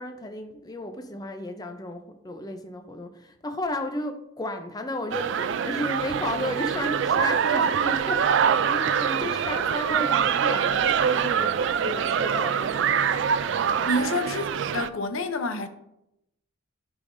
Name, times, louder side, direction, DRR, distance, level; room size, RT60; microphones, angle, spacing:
voice 1, 0.0-13.4 13.7-14.3, left 1 dB, 20° left, 0.4 m, -34 dB
sound 1, 5.1-14.9, right 7 dB, 60° right, 0.3 m, -24 dB
Wind instrument woodwind instrument, 9.9-14.0, equal, 5° right, 1.2 m, -46 dB
voice 2, 13.9-15.7, left 2 dB, 85° left, 0.7 m, -28 dB
12.0 x 4.9 x 2.6 m
head